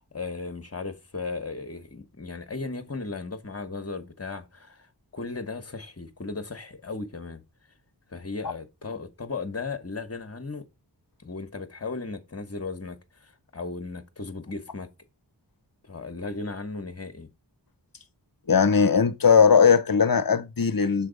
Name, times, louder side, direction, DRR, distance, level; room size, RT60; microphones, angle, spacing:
voice 1, 0.1-4.9 5.1-7.4 8.1-10.6 11.2-14.9 15.9-17.3, left 3 dB, 35° left, 1.1 m, -36 dB
voice 2, 18.5-21.1, left 6 dB, 50° left, 0.7 m, -19 dB
6.8 x 3.4 x 5.1 m
wide cardioid pair, 40°, 44 cm